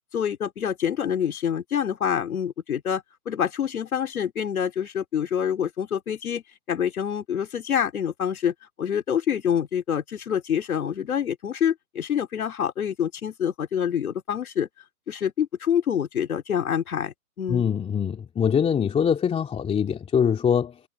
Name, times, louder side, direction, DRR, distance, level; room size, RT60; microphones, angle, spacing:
voice 1, 0.1-14.7 15.1-17.7, left 8 dB, 75° left, 3.7 m, -26 dB
voice 2, 17.5-20.8, left 7 dB, 15° left, 2.8 m, -23 dB
hypercardioid pair, 130°, 43 cm